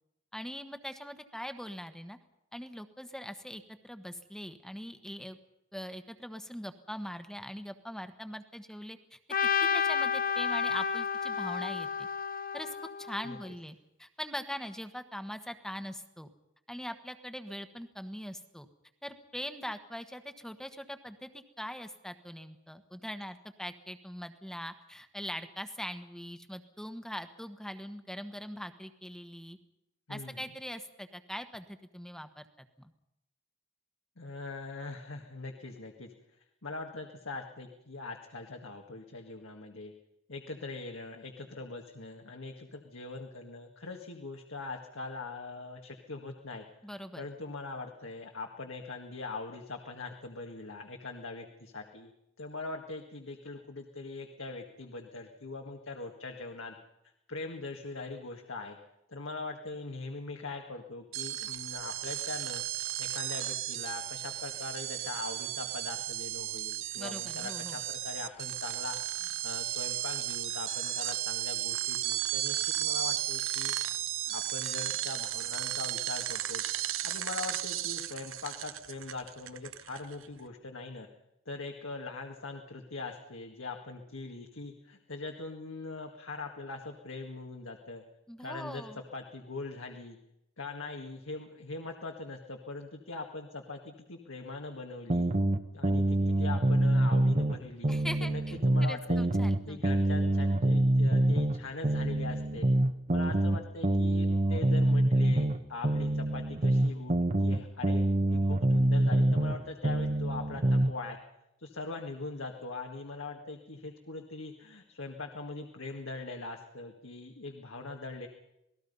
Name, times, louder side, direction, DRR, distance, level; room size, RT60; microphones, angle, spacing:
voice 1, 0.3-2.2 2.5-5.4 5.7-9.2 9.7-12.1 12.5-16.3 16.7-18.7 19.0-29.6 30.1-32.9 46.8-47.2 67.0-67.8 88.3-89.0 97.9-99.8, equal, 5° left, 9 dB, 1.3 m, -42 dB
Trumpet, 9.3-13.5, left 6 dB, 45° left, 0.7 m, -31 dB
voice 2, 34.2-36.1 36.6-39.9 40.3-46.6 47.1-52.1 52.4-56.8 57.3-58.8 59.1-62.6 63.0-73.8 74.3-76.6 77.0-81.1 81.5-88.0 88.4-88.9 89.1-90.2 90.6-95.3 95.7-97.9 98.2-99.3 99.7-102.7 103.1-111.2 111.6-118.3, left 3 dB, 80° left, 2 dB, 2.0 m, -42 dB
sound 1, 61.1-80.3, right 13 dB, 85° right, 0.9 m, -34 dB
sound 2, 95.1-97.6 97.8-101.6 101.8-105.6 105.8-109.6 109.8-110.9, right 1 dB, 35° right, 1.1 m, -26 dB
27.5 x 19.0 x 5.5 m, 0.86 s
head